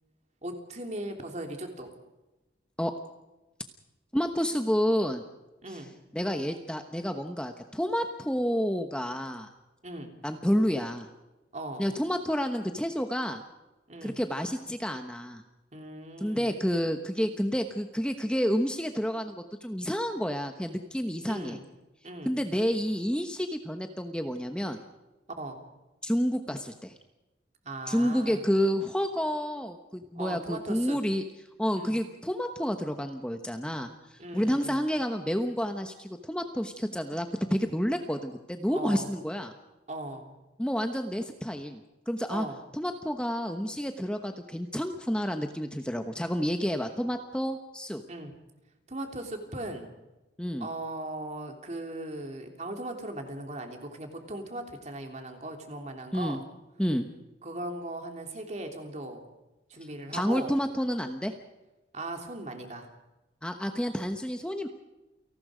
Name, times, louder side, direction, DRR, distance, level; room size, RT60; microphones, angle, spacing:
voice 1, 0.4-1.9 5.6-5.9 9.8-10.1 11.5-11.8 13.9-14.2 15.7-16.5 21.2-21.6 22.0-22.4 25.3-25.6 27.6-28.4 30.1-31.0 31.7-32.0 34.2-34.8 38.7-39.1 39.9-40.3 42.3-42.6 48.1-48.3 48.9-49.9 50.6-56.4 57.4-59.2 59.7-60.5 61.9-62.9, right 1 dB, 40° right, 4 dB, 3.3 m, -38 dB
voice 2, 4.1-5.2 5.7-5.8 6.1-9.5 10.2-11.1 11.8-13.4 14.0-15.4 16.2-21.6 22.2-24.8 26.0-26.9 27.9-31.2 31.6-39.5 40.6-41.8 42.1-42.5 42.7-48.0 50.4-50.7 56.1-56.4 56.8-57.1 60.1-61.3 63.4-64.7, equal, 5° left, 6 dB, 1.1 m, -29 dB
29.0 x 19.0 x 5.1 m, 1.0 s
head